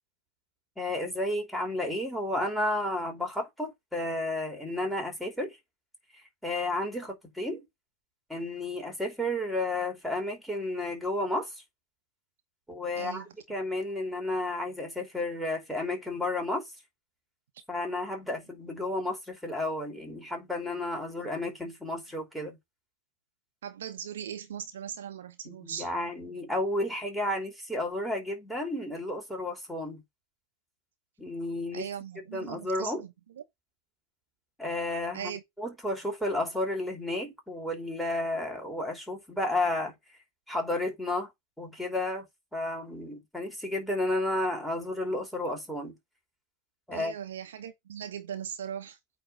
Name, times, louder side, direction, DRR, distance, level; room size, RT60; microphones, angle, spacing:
voice 1, 0.8-5.6 6.1-7.7 8.3-11.5 12.7-16.6 17.7-22.6 25.5-30.0 31.2-31.9 32.3-33.0 34.6-35.3 35.6-39.9 40.5-41.3 41.6-42.3 42.5-45.9 46.9-47.1, left 1 dB, ahead, 3.0 m, -32 dB
voice 2, 12.9-13.3 21.2-21.3 23.6-25.9 31.7-33.4 35.1-35.4 46.9-49.0, right 9 dB, 60° right, 1.0 m, -39 dB
8.7 x 3.2 x 5.4 m
figure-of-eight pair, 90°, 0 cm